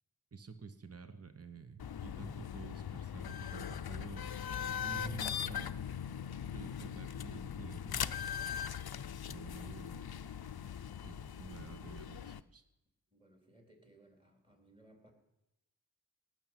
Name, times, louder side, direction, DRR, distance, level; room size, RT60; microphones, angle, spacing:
voice 1, 0.3-4.3 4.8-5.8 6.5-8.3 9.3-10.0 11.0-12.6, right 5 dB, 40° right, 10 dB, 1.0 m, -50 dB
sound 1, 1.8-12.4, left 8 dB, 80° left, 0.6 m, -40 dB
voice 2, 9.4-9.8 13.1-15.1, right 1 dB, 15° right, 3 dB, 3.7 m, -63 dB
18.0 x 6.1 x 9.0 m, 0.91 s
wide cardioid pair, 60°, 37 cm